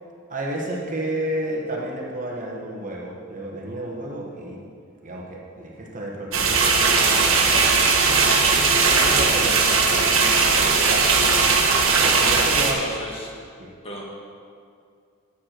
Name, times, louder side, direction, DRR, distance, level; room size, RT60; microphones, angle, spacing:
voice 1, 0.3-4.6 5.0-8.1 8.4-11.6 12.0-12.8 13.6-13.7, right 1 dB, 40° right, -2 dB, 1.4 m, -32 dB
sound 1, 6.3-12.7, right 4 dB, 70° right, 1.3 m, -18 dB
voice 2, 11.5-12.1 12.5-13.3 13.8-14.0, left 1 dB, 30° left, -3 dB, 1.7 m, -37 dB
8.5 x 7.5 x 6.0 m, 2.3 s
head